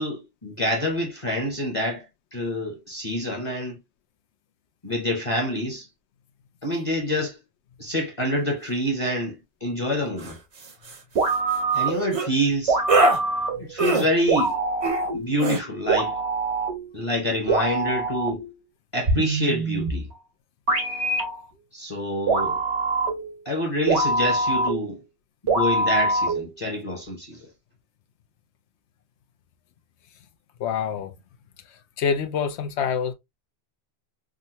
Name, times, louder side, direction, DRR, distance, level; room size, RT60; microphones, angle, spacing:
voice 1, 0.0-2.1 2.3-3.8 4.8-5.9 6.6-7.4 7.8-10.4 11.7-12.8 13.6-14.5 15.1-16.2 16.9-18.4 18.9-20.1 21.7-22.6 23.5-25.0 25.4-27.5, equal, 35° left, 0.8 m, -27 dB
sound 1, 10.2-10.3 10.6-11.0 12.1-12.3 12.9-13.2 13.8-14.1 14.8-15.1 15.4-15.6, right 3 dB, 40° right, 0.6 m, -21 dB
sound 2, 11.1-12.1 12.7-13.7 14.3-15.3 15.9-16.9 17.5-18.5 19.1-20.1 20.7-21.4 22.3-23.3 23.9-24.9 25.5-26.5, right 2 dB, 85° right, 1.6 m, -24 dB
voice 2, 30.6-31.1 32.0-33.1, left 7 dB, 85° left, 0.9 m, -26 dB
3.6 x 2.1 x 2.6 m
omnidirectional pair, 1.1 m